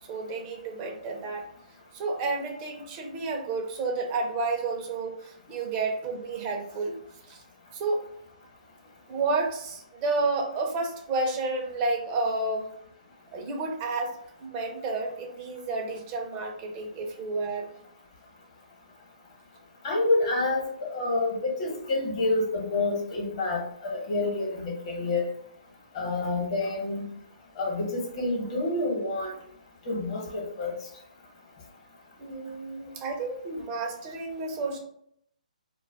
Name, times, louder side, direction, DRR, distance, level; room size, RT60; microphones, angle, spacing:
voice 1, 0.1-1.5 1.9-7.0 7.3-7.4 7.7-8.1 9.1-12.7 13.3-17.7 32.2-34.8, right 3 dB, 30° right, 2 dB, 0.6 m, -31 dB
voice 2, 19.8-25.3 25.9-27.0 27.6-29.4 29.8-30.7, left 2 dB, 45° left, -1 dB, 1.1 m, -28 dB
2.3 x 2.2 x 3.4 m, 0.69 s
hypercardioid pair, 140°, 4 cm